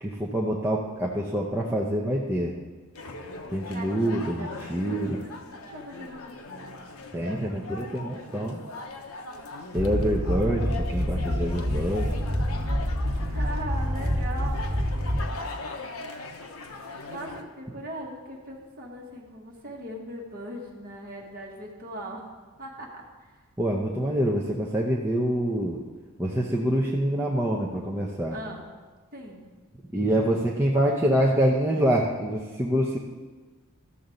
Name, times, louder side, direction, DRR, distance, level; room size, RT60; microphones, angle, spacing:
voice 1, 0.0-2.5 3.5-5.2 7.1-8.6 9.7-12.1 23.6-25.8 26.2-28.4 29.9-33.0, right 1 dB, 10° right, -3 dB, 0.7 m, -26 dB
sound 1, 2.9-17.4, left 3 dB, 70° left, 0.9 m, -40 dB
voice 2, 3.7-6.8 13.3-14.6 17.1-22.3 22.6-23.3 28.3-28.6 29.1-29.4, right 1 dB, 40° right, -2 dB, 1.7 m, -39 dB
sound 2, 9.7-15.6, equal, 60° right, 1.7 m, -27 dB
13.5 x 6.9 x 3.9 m, 1.3 s
head